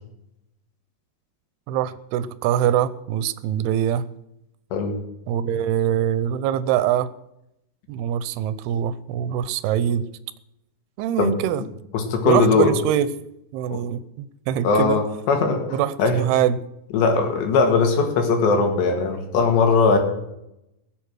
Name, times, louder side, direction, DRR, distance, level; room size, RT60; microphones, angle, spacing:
voice 1, 1.7-4.1 5.3-7.1 7.9-10.0 11.0-11.6 12.3-13.1 13.5-15.0 15.7-16.6, right 10 dB, 80° right, 15 dB, 2.6 m, -23 dB
voice 2, 11.9-12.7 14.6-15.7 16.0-16.2 16.9-20.0, left 4 dB, 85° left, 4 dB, 4.3 m, -19 dB
20.0 x 7.9 x 6.3 m, 0.85 s
omnidirectional pair, 4.9 m